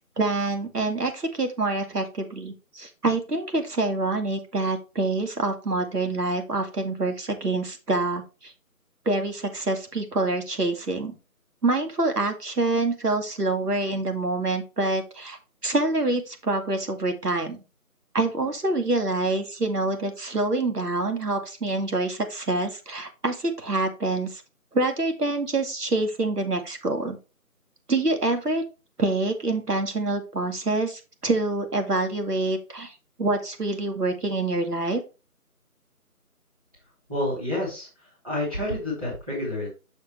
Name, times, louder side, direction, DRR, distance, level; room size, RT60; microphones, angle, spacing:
voice 1, 0.0-8.5 9.1-11.1 11.6-15.4 15.6-17.6 18.1-24.4 24.7-27.2 27.9-28.6 29.0-35.0, right 2 dB, 85° right, 6 dB, 2.3 m, -26 dB
voice 2, 37.1-39.7, left 1 dB, 25° right, -7 dB, 3.0 m, -29 dB
7.0 x 6.5 x 3.2 m, 0.30 s
figure-of-eight pair, 180°, 46 cm